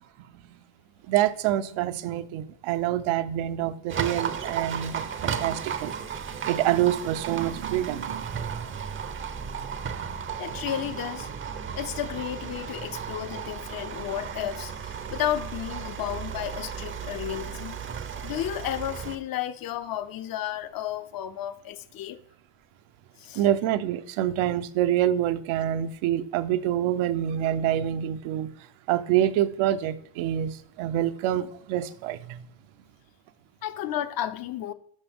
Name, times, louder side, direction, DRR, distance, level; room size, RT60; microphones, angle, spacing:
voice 1, 1.1-6.2 6.5-8.3 23.4-28.5 28.9-32.4, right 12 dB, 80° right, 0.7 m, -26 dB
Livestock farm animals working animals, 3.9-19.2, right 7 dB, 25° right, 0.5 m, -34 dB
voice 2, 10.4-11.3 11.7-17.8 18.2-22.2 23.2-23.4 33.6-34.7, left 11 dB, 50° left, 0.6 m, -32 dB
12.0 x 5.2 x 3.4 m
cardioid pair, 145°, 48 cm